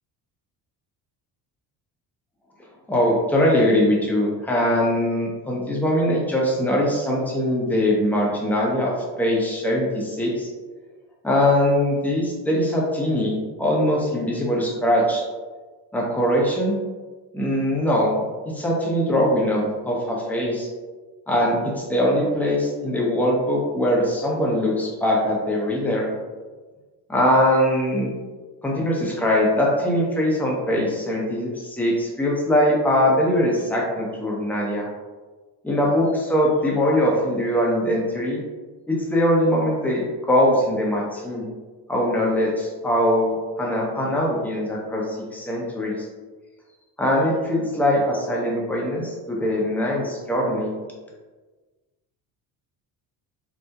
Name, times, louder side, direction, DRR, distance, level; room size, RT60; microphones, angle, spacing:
voice 1, 2.9-8.9 9.2-10.5 11.2-15.2 15.9-16.8 17.3-20.7 21.3-26.1 27.1-28.1 28.6-34.9 35.6-38.4 38.9-41.5 41.9-46.1 47.0-50.7, equal, 5° left, -3 dB, 0.6 m, -22 dB
2.8 x 2.0 x 2.3 m, 1.3 s
supercardioid pair, 80°, 42 cm